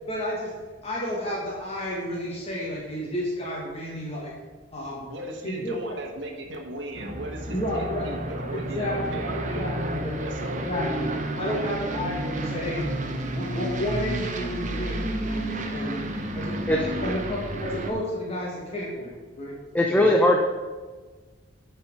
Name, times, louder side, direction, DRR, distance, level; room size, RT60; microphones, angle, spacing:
voice 1, 0.0-0.5 0.8-4.3 4.7-5.0 5.4-6.0 7.5-8.1 8.5-12.9 13.3-16.0 16.3-19.6 19.9-20.1, left 1 dB, 30° left, -4 dB, 1.3 m, -32 dB
voice 2, 5.0-9.8 10.1-10.6, right 1 dB, 75° right, 1 dB, 1.2 m, -37 dB
Aircraft, 6.9-17.9, right 1 dB, 40° right, 0.8 m, -31 dB
voice 3, 19.7-20.4, left 1 dB, 10° left, 1 dB, 0.5 m, -19 dB
8.8 x 4.3 x 5.9 m, 1.3 s
head